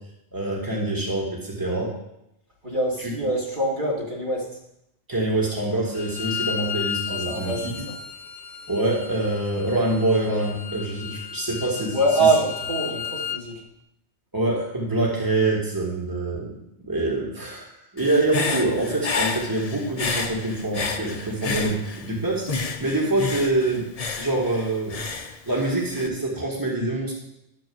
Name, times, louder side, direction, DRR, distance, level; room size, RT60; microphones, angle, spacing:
voice 1, 0.3-1.9 5.1-7.7 8.7-12.0 14.3-16.5 16.8-23.9 24.2-25.0 25.5-27.1, right 2 dB, 20° right, -3 dB, 2.1 m, -25 dB
voice 2, 2.6-4.5 7.1-8.0 11.9-13.6, right 2 dB, 45° right, -6 dB, 2.9 m, -24 dB
Bowed string instrument, 5.9-13.4, left 7 dB, 65° left, 1.0 m, -34 dB
Human voice / Breathing, 18.0-22.1 22.5-26.1, left 4 dB, 40° left, 0.7 m, -30 dB
12.0 x 4.8 x 7.9 m, 0.80 s
omnidirectional pair, 1.1 m